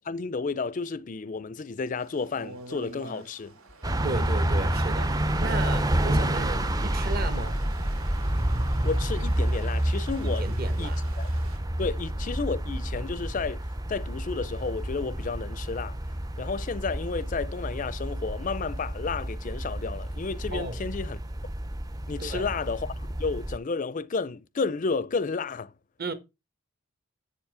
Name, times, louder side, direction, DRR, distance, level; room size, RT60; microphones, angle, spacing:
voice 1, 0.1-3.5 8.8-10.5 10.8-10.9 11.2-11.3 11.8-13.6 13.9-16.0 16.4-21.2 22.1-22.9 23.2-25.7, left 4 dB, 40° left, 0.4 m, -31 dB
Stream, 2.0-11.6, right 3 dB, 90° right, 2.4 m, -48 dB
sound 1, 3.8-23.6, right 1 dB, 20° right, 0.5 m, -29 dB
voice 2, 4.0-7.7 10.2-11.0 20.5-20.8 22.2-22.5 26.0-26.1, right 2 dB, 45° right, 1.3 m, -34 dB
7.9 x 7.2 x 4.8 m
head